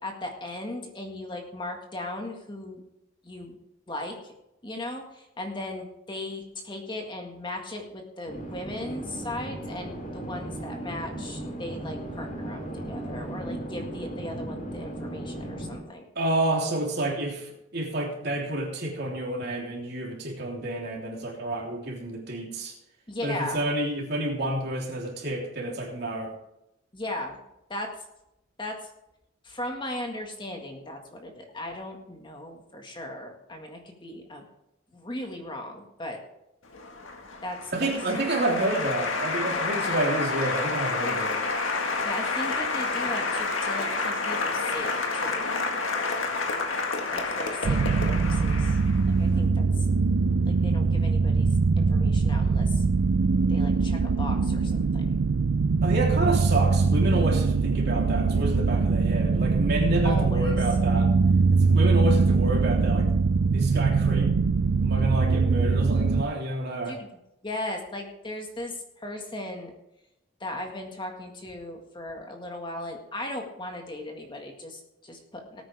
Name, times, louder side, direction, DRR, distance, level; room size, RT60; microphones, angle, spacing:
voice 1, 0.0-2.8 3.2-3.6 3.9-4.3 4.6-16.0 23.1-23.6 26.9-27.4 27.7-27.9 28.6-28.8 29.4-34.4 34.9-36.2 37.4-37.9 42.0-45.5 47.1-48.8 49.1-49.9 50.5-51.5 51.8-52.8 53.5-55.2 60.0-60.5 66.9-69.7 70.4-75.6, left 1 dB, 25° left, 2 dB, 1.8 m, -37 dB
sound 1, 8.3-15.8, right 1 dB, 40° left, 2.4 m, -36 dB
voice 2, 16.1-22.7 23.2-26.3 37.7-41.4 55.8-61.1 61.5-63.1 63.5-64.3 64.8-67.0, right 1 dB, 55° right, -1 dB, 3.4 m, -29 dB
Applause, 36.7-49.2, left 3 dB, 85° left, 1.8 m, -29 dB
sound 2, 47.6-66.2, right 4 dB, 75° right, 0.5 m, -22 dB
18.5 x 9.1 x 3.5 m, 0.86 s
head